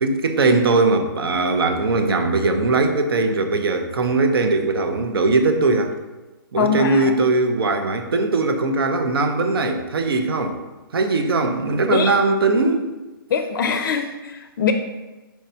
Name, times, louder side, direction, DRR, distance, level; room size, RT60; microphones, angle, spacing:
voice 1, 0.0-5.9 6.5-10.6 10.9-12.9, right 3 dB, 85° right, 6 dB, 0.6 m, -20 dB
voice 2, 6.6-7.2 11.9-12.1 13.3-14.7, left 6 dB, 60° left, 6 dB, 0.4 m, -22 dB
4.5 x 2.7 x 4.3 m, 1.2 s
hypercardioid pair, 155°, 12 cm